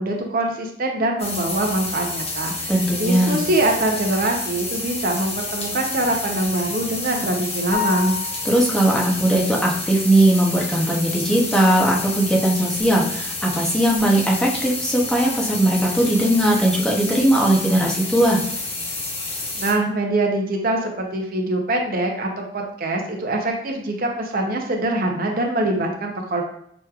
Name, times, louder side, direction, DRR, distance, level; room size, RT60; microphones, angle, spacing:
voice 1, 0.0-2.7 3.0-8.1 19.6-26.4, right 2 dB, 55° right, 1 dB, 0.7 m, -23 dB
sound 1, 1.2-19.7, left 2 dB, 35° left, 0.8 m, -29 dB
voice 2, 2.7-3.4 8.4-18.4, right 1 dB, 5° left, -3 dB, 0.7 m, -19 dB
sound 2, 7.7-8.8, left 9 dB, 60° left, 0.9 m, -28 dB
6.0 x 3.0 x 2.4 m, 0.69 s
head